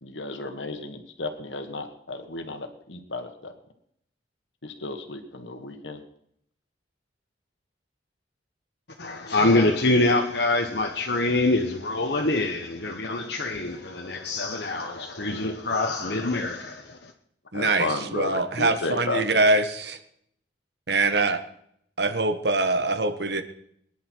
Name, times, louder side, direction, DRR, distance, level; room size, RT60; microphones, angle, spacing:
voice 1, 0.0-3.5 4.6-6.0 17.5-19.5, left 2 dB, 85° left, 1.7 m, -33 dB
voice 2, 9.0-17.1, left 2 dB, 65° left, 1.2 m, -25 dB
voice 3, 17.5-20.0 20.9-21.4 22.0-23.4, right 2 dB, 65° right, 1.4 m, -23 dB
22.5 x 10.5 x 4.6 m
head